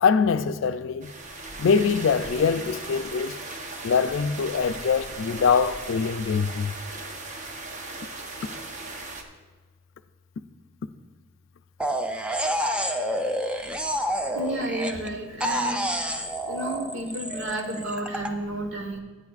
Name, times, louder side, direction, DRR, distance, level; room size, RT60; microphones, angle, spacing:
voice 1, 0.0-1.1 1.6-3.4 3.8-6.7, left 5 dB, 80° left, 0.4 m, -23 dB
sound 1, 1.0-9.2, right 2 dB, 40° right, 0.9 m, -38 dB
sound 2, 11.8-15.1 15.4-18.3, equal, 5° right, 0.4 m, -28 dB
voice 2, 13.5-13.9 14.3-15.8 16.5-19.0, right 1 dB, 75° right, 1.3 m, -32 dB
15.5 x 8.6 x 2.4 m
head